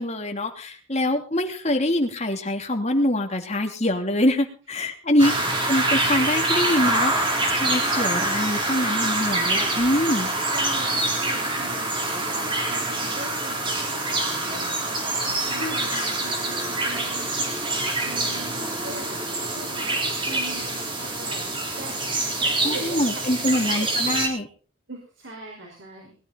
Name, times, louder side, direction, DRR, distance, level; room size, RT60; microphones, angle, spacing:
voice 1, 0.0-5.3 5.7-10.3 15.6-16.1 22.6-24.5, left 1 dB, 35° left, 3 dB, 3.0 m, -24 dB
sound 1, 5.2-24.3, right 2 dB, 25° right, 4.1 m, -25 dB
voice 2, 10.5-24.1 24.9-26.1, right 2 dB, 65° right, 0 dB, 4.9 m, -41 dB
21.0 x 13.0 x 4.1 m, 0.39 s
head